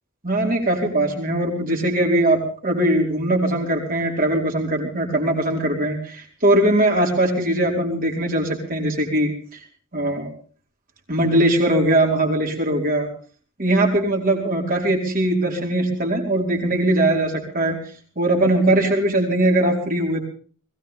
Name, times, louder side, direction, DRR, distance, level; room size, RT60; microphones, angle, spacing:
voice 1, 0.2-9.3 9.9-10.3 11.1-13.1 13.6-17.8 18.2-20.2, right 1 dB, 40° right, 1 dB, 4.8 m, -20 dB
21.5 x 17.5 x 3.6 m, 0.43 s
head